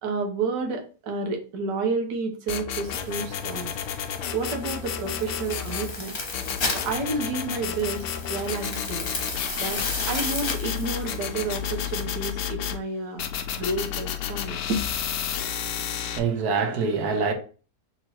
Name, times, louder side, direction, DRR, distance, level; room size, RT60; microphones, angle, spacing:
voice 1, 0.0-3.7 4.3-6.2 6.8-8.0 8.3-9.1 9.6-13.2 13.6-14.8, right 3 dB, 90° right, 1.6 m, -30 dB
sound 1, 2.5-5.9 6.3-12.8 13.2-16.2, left 9 dB, 70° left, 1.0 m, -31 dB
sound 2, 2.8-12.0, left 3 dB, 40° left, 1.0 m, -35 dB
voice 2, 15.6-17.3, right 5 dB, 65° right, 1.3 m, -26 dB
3.6 x 3.0 x 4.3 m
omnidirectional pair, 1.8 m